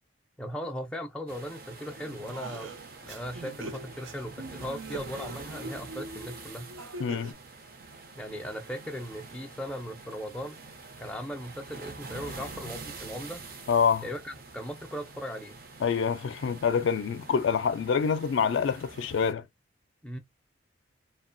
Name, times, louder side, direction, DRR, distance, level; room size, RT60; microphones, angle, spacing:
voice 1, 0.4-2.8 3.0-6.7 8.1-10.6 11.0-13.4 14.0-15.6 20.0-20.2, equal, 5° left, 0.5 m, -38 dB
sound 1, 1.3-19.3, right 3 dB, 50° right, 0.6 m, -46 dB
sound 2, 2.0-7.3, right 2 dB, 90° right, 0.6 m, -42 dB
voice 2, 7.0-7.4 13.7-14.1 15.8-19.4, left 6 dB, 75° left, 0.4 m, -26 dB
2.9 x 2.2 x 2.5 m
head